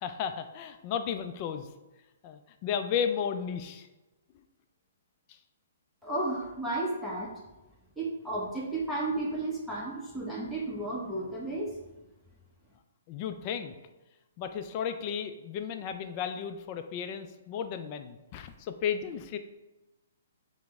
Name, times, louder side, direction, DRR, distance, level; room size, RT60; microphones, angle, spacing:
voice 1, 0.0-1.7 2.2-3.9 13.1-13.8 14.4-19.4, left 7 dB, 35° left, 8 dB, 0.3 m, -34 dB
voice 2, 6.0-7.3 8.0-11.7, right 2 dB, ahead, -6 dB, 0.8 m, -33 dB
5.8 x 2.1 x 3.5 m, 1.1 s
figure-of-eight pair, 125°, 0 cm